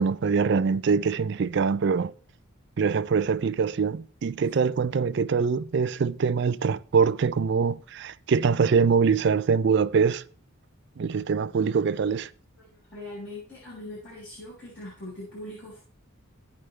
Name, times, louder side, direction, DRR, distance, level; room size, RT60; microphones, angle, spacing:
voice 1, 0.0-2.1 2.8-10.2 11.0-12.3, right 5 dB, 50° right, 0.3 m, -24 dB
voice 2, 12.6-15.8, left 1 dB, 50° left, 5.0 m, -41 dB
15.5 x 5.2 x 3.2 m
head